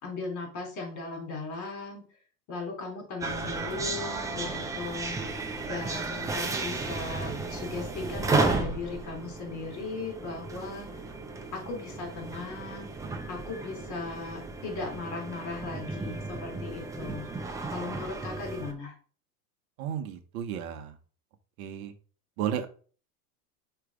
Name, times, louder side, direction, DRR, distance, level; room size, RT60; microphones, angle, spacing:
voice 1, 0.0-2.0 2.5-5.3 5.7-11.0 11.5-12.9 13.3-17.3 17.7-18.9, left 3 dB, 40° left, 2 dB, 3.3 m, -37 dB
sound 1, 3.2-18.7, right 3 dB, 5° right, 0.5 m, -34 dB
voice 2, 19.8-20.9 21.6-21.9 22.4-22.7, right 9 dB, 65° right, 7 dB, 1.0 m, -33 dB
6.1 x 3.2 x 4.8 m, 0.39 s
supercardioid pair, 130°, 46 cm